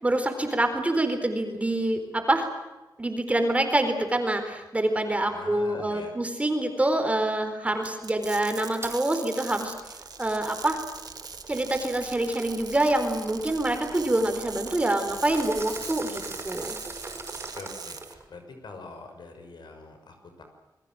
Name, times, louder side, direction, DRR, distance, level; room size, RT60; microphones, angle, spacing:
voice 1, 0.0-2.5 3.0-9.7 10.2-10.8 11.5-16.8, right 1 dB, 15° right, 6 dB, 4.1 m, -26 dB
voice 2, 5.3-6.2 17.5-20.4, left 3 dB, 80° left, 5 dB, 6.2 m, -44 dB
sound 1, 7.8-18.1, right 5 dB, 60° right, 1.9 m, -42 dB
sound 2, 8.8-9.0 9.5-18.3, right 3 dB, 35° right, 5.6 m, -42 dB
28.5 x 21.5 x 7.8 m, 1.1 s
wide cardioid pair, 150°, 7 cm